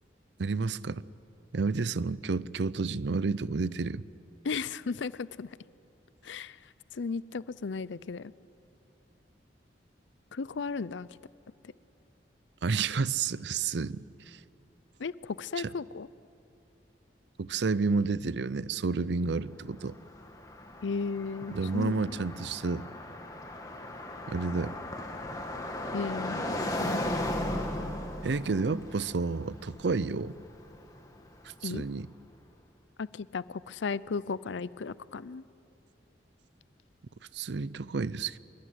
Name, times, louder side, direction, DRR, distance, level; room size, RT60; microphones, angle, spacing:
voice 1, 0.4-1.0 1.5-4.0 12.6-14.4 15.6-15.7 17.4-20.0 21.5-22.8 24.3-24.7 28.2-30.3 31.6-32.1 37.3-38.4, right 4 dB, 70° right, 18 dB, 0.6 m, -30 dB
voice 2, 4.4-5.5 6.2-6.6 6.9-8.3 10.3-11.1 15.0-16.1 20.8-22.2 25.9-27.0 31.6-31.9 33.0-35.4, left 5 dB, 80° left, 18 dB, 0.5 m, -35 dB
Car passing by, 19.5-31.5, left 1 dB, 20° left, 2.0 m, -37 dB
25.0 x 23.0 x 9.4 m, 2.8 s
head